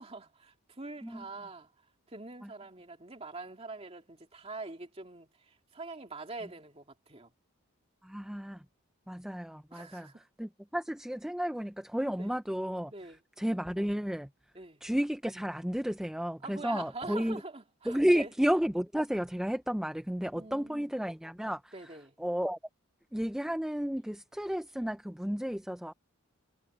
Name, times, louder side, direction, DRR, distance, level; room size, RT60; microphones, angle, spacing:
voice 1, 0.0-1.7 2.1-7.3 9.7-10.2 12.2-12.3 12.9-13.2 14.5-14.8 16.4-18.3 20.3-20.9 21.7-22.1, right 3 dB, 30° right, 2.5 m, -44 dB
voice 2, 8.0-8.6 9.1-12.9 13.4-14.3 14.8-17.4 17.8-21.9 22.2-22.6 23.1-25.9, equal, 5° right, 0.4 m, -32 dB
head